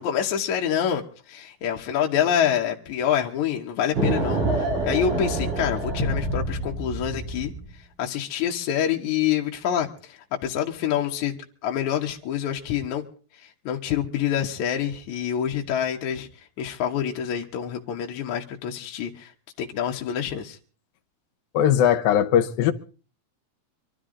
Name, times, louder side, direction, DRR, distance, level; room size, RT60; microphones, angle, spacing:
voice 1, 0.0-7.5 8.0-13.0 13.7-16.3 16.6-19.3 19.6-20.6, left 9 dB, 65° left, 2.3 m, -26 dB
sound 1, 4.0-7.7, right 2 dB, 65° right, 8.2 m, -27 dB
voice 2, 21.5-22.7, left 10 dB, 85° left, 2.7 m, -19 dB
24.5 x 13.0 x 3.8 m
omnidirectional pair, 4.1 m